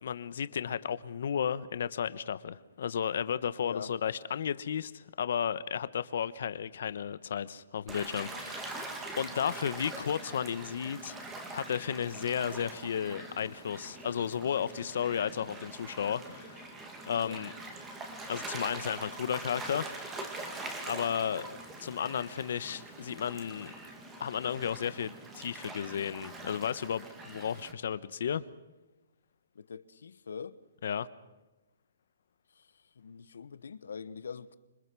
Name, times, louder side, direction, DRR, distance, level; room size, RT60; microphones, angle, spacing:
voice 1, 0.0-11.2 11.5-16.7 17.1-17.5 18.3-19.9 20.9-21.4 21.8-23.7 24.2-28.5 30.8-31.1, left 8 dB, 50° left, 1.2 m, -33 dB
voice 2, 3.6-3.9 17.2-17.4 21.4-21.6 29.5-30.6 32.5-34.6, left 6 dB, 75° left, 1.3 m, -44 dB
Gull seagull / Waves surf, 7.9-27.7, right 2 dB, 10° right, 2.1 m, -43 dB
27.0 x 25.0 x 6.3 m
hypercardioid pair, 175°, 0 cm